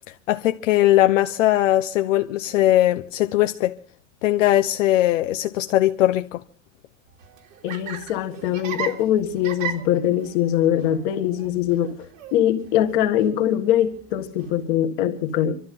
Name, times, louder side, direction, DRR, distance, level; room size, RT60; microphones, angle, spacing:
voice 1, 0.3-3.8 4.2-6.4, left 14 dB, 70° left, 0.9 m, -20 dB
Laughter, 7.1-14.6, right 8 dB, 90° right, 3.1 m, -37 dB
voice 2, 7.6-12.0 12.3-15.6, left 11 dB, 40° left, 1.8 m, -22 dB
26.0 x 13.5 x 3.7 m
supercardioid pair, 175°, 39 cm